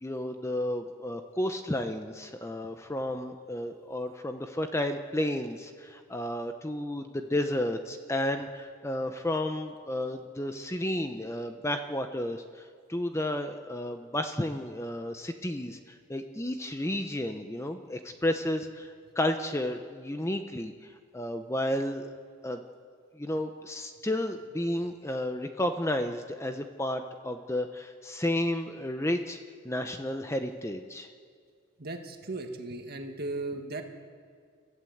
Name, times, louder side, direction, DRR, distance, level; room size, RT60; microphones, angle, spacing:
voice 1, 0.0-22.2 22.4-22.6 23.1-29.4 29.6-31.1, left 1 dB, 15° left, 6 dB, 0.8 m, -32 dB
voice 2, 31.8-33.8, right 2 dB, 45° right, 4 dB, 2.0 m, -36 dB
30.0 x 14.5 x 8.0 m, 2.1 s
head